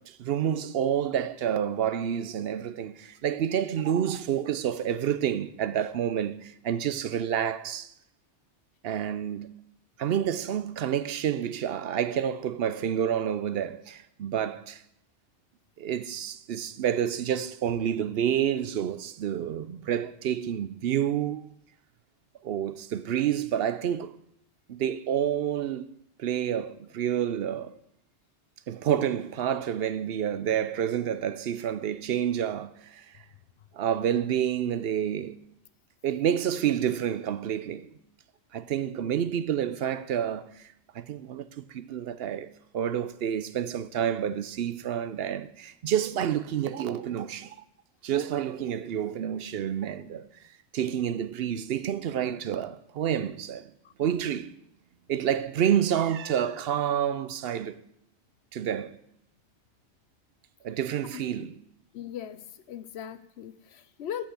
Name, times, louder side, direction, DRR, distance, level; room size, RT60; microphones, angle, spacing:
voice 1, 0.0-7.9 8.8-9.5 10.0-14.8 15.8-21.5 22.4-24.1 24.7-25.8 26.2-27.7 28.7-33.2 33.7-35.4 36.0-37.9 38.5-42.5 42.7-47.6 48.0-50.3 50.7-53.7 54.0-54.5 55.1-57.8 58.5-59.0 60.6-61.6, right 9 dB, 65° right, 0.8 m, -29 dB
voice 2, 61.9-62.4 62.7-64.3, left 9 dB, 70° left, 0.9 m, -38 dB
8.4 x 6.4 x 7.8 m
omnidirectional pair, 1.2 m